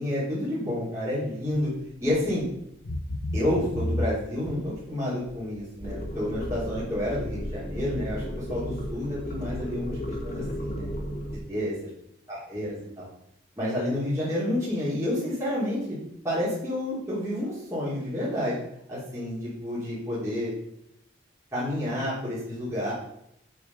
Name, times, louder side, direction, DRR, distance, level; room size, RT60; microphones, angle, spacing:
voice 1, 0.0-1.7 2.0-2.4 3.3-10.0 10.2-10.9 11.5-11.7 12.3-13.1 13.6-15.8 16.2-18.6 18.9-20.5 21.5-22.9, left 1 dB, 15° right, -10 dB, 3.2 m, -29 dB
sound 1, 2.1-2.5 2.8-4.8 5.3-5.6 6.1-6.2, left 1 dB, 85° left, 0.8 m, -31 dB
sound 2, 5.8-11.4, equal, 35° left, 1.5 m, -34 dB
7.2 x 6.5 x 5.5 m, 0.76 s
head